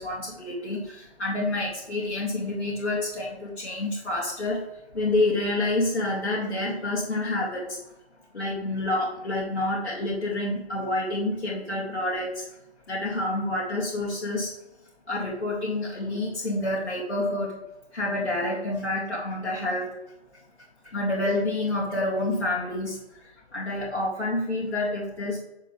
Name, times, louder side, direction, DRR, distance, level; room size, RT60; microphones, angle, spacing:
voice 1, 0.0-4.7 4.9-7.8 8.3-12.5 12.9-14.5 15.1-17.5 17.9-19.9 20.8-25.4, left 2 dB, 65° left, -6 dB, 2.5 m, -28 dB
7.8 x 6.8 x 3.2 m, 0.89 s
figure-of-eight pair, 155°, 33 cm